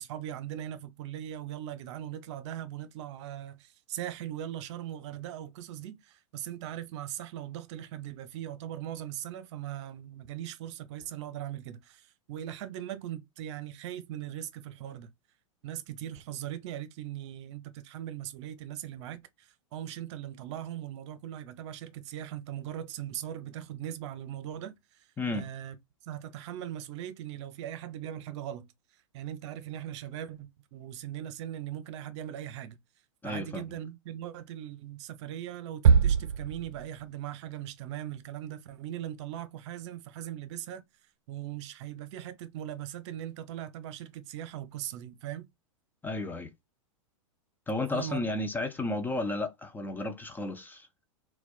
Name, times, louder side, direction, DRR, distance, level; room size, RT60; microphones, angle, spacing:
voice 1, 0.0-15.1 15.6-25.1 25.3-25.7 26.0-28.7 29.1-32.8 33.2-40.8 41.3-45.5 47.9-48.2, right 11 dB, 55° right, 0.7 m, -40 dB
voice 2, 33.2-33.6 46.0-46.5 47.7-50.9, left 2 dB, 10° left, 0.4 m, -33 dB
sound 1, 35.8-37.2, right 6 dB, 85° right, 0.4 m, -23 dB
4.2 x 2.2 x 2.4 m
hypercardioid pair, 105°, 17 cm